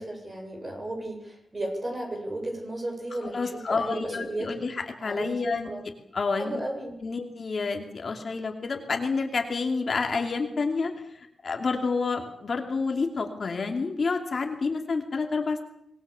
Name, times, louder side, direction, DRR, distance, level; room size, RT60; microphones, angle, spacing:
voice 1, 0.0-4.5 5.0-5.8 6.4-6.9, right 1 dB, 25° right, 2 dB, 7.8 m, -34 dB
voice 2, 3.2-5.7 6.1-6.6 7.0-15.6, left 4 dB, 45° left, 3 dB, 2.7 m, -29 dB
25.5 x 20.5 x 7.1 m, 0.75 s
wide cardioid pair, 135°, 0 cm